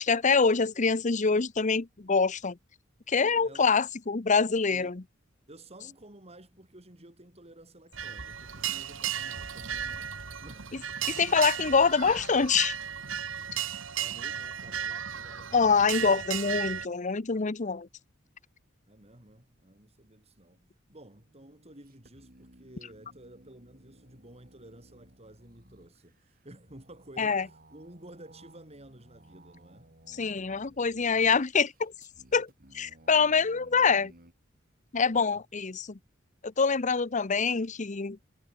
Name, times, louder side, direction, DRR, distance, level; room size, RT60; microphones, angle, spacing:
voice 1, 0.0-2.6 3.1-5.0 11.2-12.8 15.5-17.9 27.2-27.5 30.1-31.9 32.3-34.1 34.9-36.0 36.4-38.2, left 5 dB, 40° left, 0.8 m, -25 dB
voice 2, 5.5-10.7 11.8-11.9 14.0-15.9 18.9-29.9 35.3-35.4, right 1 dB, 35° right, 6.2 m, -52 dB
sound 1, 7.9-16.9, right 9 dB, 85° right, 1.9 m, -35 dB
sound 2, 21.1-34.3, right 1 dB, 50° right, 6.5 m, -58 dB
head